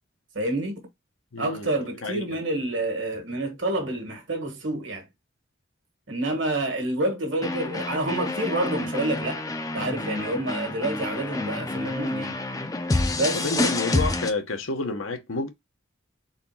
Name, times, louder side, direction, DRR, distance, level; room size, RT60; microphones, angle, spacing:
voice 1, 0.3-0.8 1.4-5.1 6.1-9.4 9.7-12.4 13.1-13.7, right 1 dB, 65° right, 1.5 m, -28 dB
voice 2, 1.3-1.7 2.0-2.4 13.0-15.5, left 3 dB, 90° left, 0.9 m, -30 dB
sound 1, 7.4-14.3, left 2 dB, 15° left, 0.4 m, -28 dB
4.2 x 4.0 x 2.8 m
head